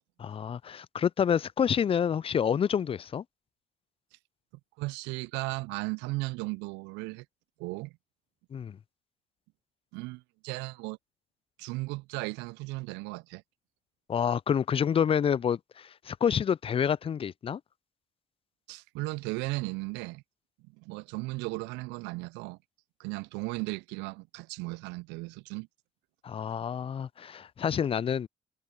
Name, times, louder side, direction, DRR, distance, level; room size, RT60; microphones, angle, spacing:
voice 1, 0.2-3.2 8.5-8.8 14.1-17.6 26.2-28.3, left 8 dB, 30° left, 0.4 m, -28 dB
voice 2, 4.8-7.3 7.6-7.9 9.9-11.0 11.6-13.4 18.7-20.2 20.7-22.6 23.0-25.7, right 24 dB, 75° right, 0.4 m, -36 dB
hypercardioid pair, 50°, 18 cm